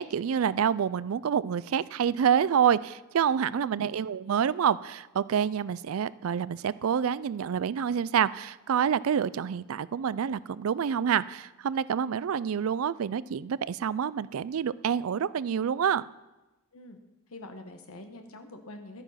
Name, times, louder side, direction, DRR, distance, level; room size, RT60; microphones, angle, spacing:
voice 1, 0.0-16.0, right 8 dB, 70° right, 19 dB, 0.4 m, -27 dB
voice 2, 3.5-4.0 16.7-17.0 17.3-19.0, left 2 dB, 80° left, 6 dB, 1.2 m, -45 dB
12.5 x 9.0 x 5.7 m, 1.1 s
head